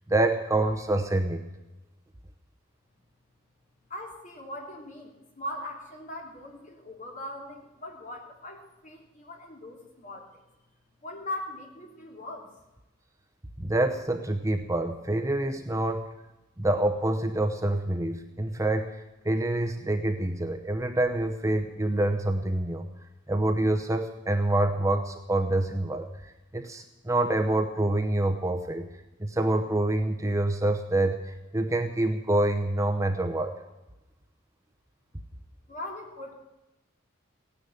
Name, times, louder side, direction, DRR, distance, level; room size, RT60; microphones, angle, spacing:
voice 1, 0.1-1.4 13.6-16.1 16.6-19.0 19.2-22.9 23.3-28.8 29.2-33.5, right 1 dB, 15° right, 5 dB, 0.8 m, -26 dB
voice 2, 3.9-10.4 11.0-12.5 35.7-36.3, left 1 dB, 40° left, 1 dB, 3.3 m, -40 dB
16.5 x 10.0 x 8.0 m, 1.0 s
head